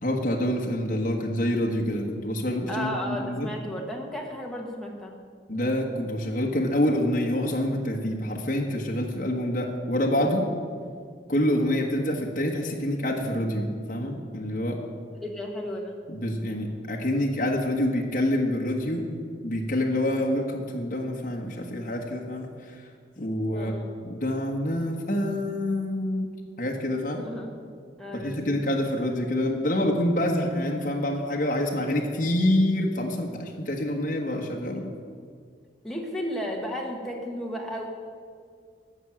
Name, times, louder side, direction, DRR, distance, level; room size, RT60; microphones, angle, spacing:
voice 1, 0.0-3.5 5.5-10.4 11.3-14.8 16.1-19.1 19.4-22.9 23.2-26.3 26.6-27.3 28.1-34.9, left 1 dB, 45° left, 0 dB, 1.3 m, -27 dB
voice 2, 2.7-5.3 15.1-15.9 23.5-24.0 27.2-27.7 28.0-28.6 35.8-37.9, equal, ahead, -1 dB, 1.6 m, -34 dB
14.5 x 6.1 x 8.9 m, 2.1 s
head